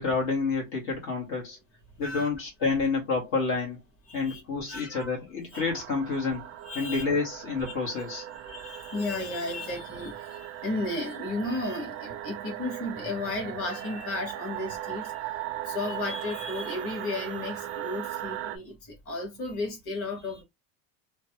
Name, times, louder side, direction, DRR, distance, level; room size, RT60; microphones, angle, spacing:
voice 1, 0.0-1.6 2.0-3.8 4.1-6.4 6.7-8.2, left 4 dB, 60° left, 1.5 m, -29 dB
voice 2, 4.1-4.4 4.7-5.1 5.5-5.6 6.6-7.0 7.6-8.0 8.4-15.3 15.6-20.4, left 2 dB, 35° left, 1.6 m, -34 dB
sound 1, 5.5-18.6, right 12 dB, 35° right, 0.4 m, -38 dB
3.1 x 2.2 x 2.8 m
supercardioid pair, 135°, 40 cm